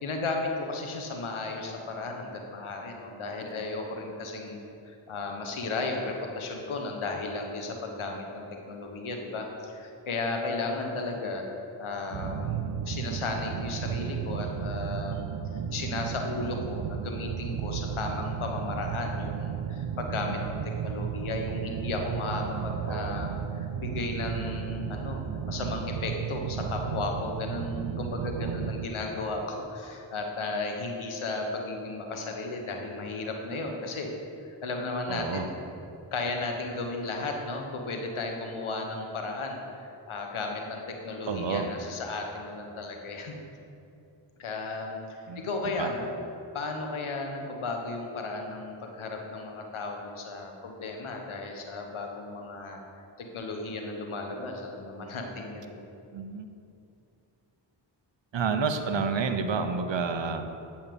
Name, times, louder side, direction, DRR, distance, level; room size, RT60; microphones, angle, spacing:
voice 1, 0.0-11.4 11.8-15.4 15.7-25.2 25.5-34.1 34.6-35.5 36.1-43.3 44.4-45.0 45.4-46.1 46.5-52.8 53.2-55.8, left 3 dB, 90° left, 2 dB, 1.3 m, -34 dB
sound 1, 12.1-28.8, right 8 dB, 85° right, 0.6 m, -34 dB
voice 2, 22.9-23.2 28.2-28.6 35.1-35.5 41.3-41.7 45.3-45.9 56.1-56.5 58.3-60.5, right 5 dB, 65° right, 7 dB, 0.9 m, -30 dB
9.3 x 5.7 x 6.9 m, 2.7 s
cardioid pair, 40°, 47 cm